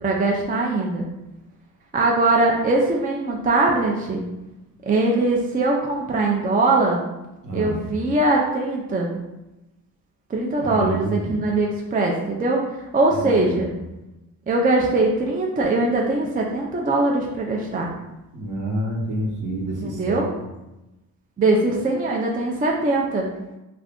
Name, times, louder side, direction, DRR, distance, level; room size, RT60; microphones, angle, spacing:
voice 1, 0.0-1.1 1.9-4.2 4.9-7.0 7.5-9.2 10.3-13.7 14.5-17.9 19.8-20.3 21.4-23.3, right 2 dB, 20° right, -1 dB, 0.4 m, -21 dB
voice 2, 7.4-7.8 10.6-11.4 13.1-13.6 18.3-20.2, right 1 dB, 50° right, 0 dB, 0.9 m, -28 dB
2.4 x 2.4 x 3.5 m, 0.99 s
cardioid pair, 65°, 40 cm